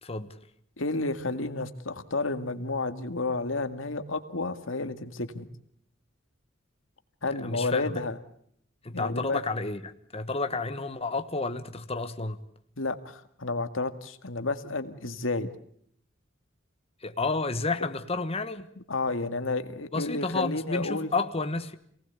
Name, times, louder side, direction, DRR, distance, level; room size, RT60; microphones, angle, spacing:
voice 1, 0.0-0.4 7.4-8.0 8.8-12.4 17.0-18.7 19.9-21.7, left 3 dB, 30° left, 1.4 m, -31 dB
voice 2, 0.8-5.5 7.2-8.2 8.9-9.4 12.8-15.5 18.9-21.1, left 3 dB, 80° left, 2.0 m, -31 dB
27.5 x 19.0 x 8.3 m
head